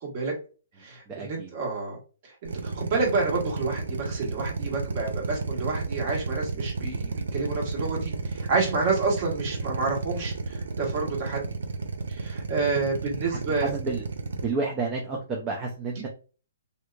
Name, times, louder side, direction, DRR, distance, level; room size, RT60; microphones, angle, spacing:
voice 1, 0.0-0.3 0.8-2.0 2.2-11.5 12.1-13.7, right 4 dB, 45° right, -1 dB, 1.6 m, -29 dB
voice 2, 1.1-1.5 13.3-14.0 14.4-16.1, right 3 dB, 25° right, 0 dB, 0.6 m, -30 dB
Drill, 2.4-14.4, right 3 dB, 80° right, 0.6 m, -32 dB
3.3 x 2.8 x 2.5 m, 0.36 s
hypercardioid pair, 145°, 0 cm